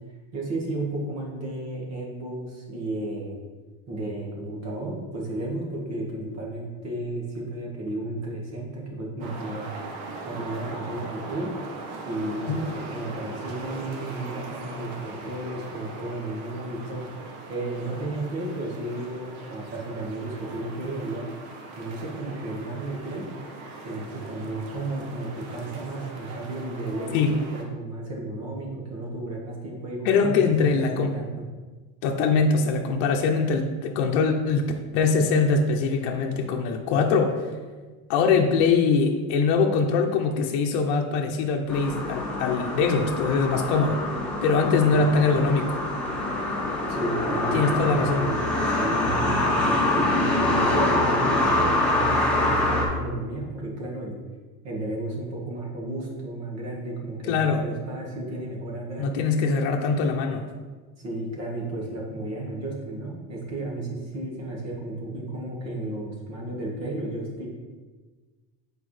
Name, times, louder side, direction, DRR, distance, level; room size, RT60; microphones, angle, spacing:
voice 1, 0.3-3.4 3.9-9.7 10.2-11.5 12.1-17.1 17.5-21.3 21.8-23.3 23.8-31.3 44.9-45.1 46.9-54.2 54.6-59.2 61.0-67.5, right 2 dB, 40° right, -2 dB, 1.8 m, -33 dB
sound 1, 9.2-27.6, right 3 dB, 55° right, 1.1 m, -40 dB
voice 2, 30.0-31.1 32.0-37.4 38.1-44.0 44.4-45.8 47.5-48.3 57.3-57.6 59.0-60.4, left 4 dB, 70° left, 2 dB, 0.8 m, -22 dB
sound 2, 41.7-52.8, left 1 dB, 5° left, 1.5 m, -25 dB
8.2 x 4.7 x 3.3 m, 1.4 s
cardioid pair, 145°, 41 cm